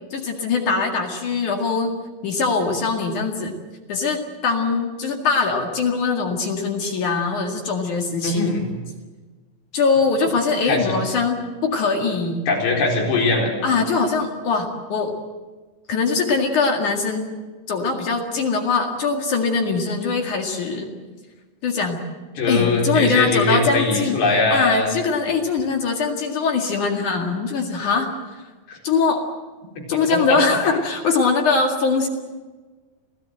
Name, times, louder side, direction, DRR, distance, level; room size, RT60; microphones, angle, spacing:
voice 1, 0.1-1.9 2.2-3.6 3.9-8.5 9.7-12.4 13.6-15.1 15.9-17.3 17.7-20.9 21.6-22.0 22.5-24.2 24.5-28.1 28.4-28.5 28.8-29.3 29.9-32.1, left 4 dB, 50° left, 2 dB, 3.0 m, -22 dB
voice 2, 8.2-8.6 10.6-10.9 12.5-13.5 22.4-24.9 28.7-28.8 29.9-30.4, left 3 dB, 70° left, 0 dB, 6.5 m, -21 dB
27.5 x 17.0 x 7.8 m, 1.3 s
omnidirectional pair, 5.1 m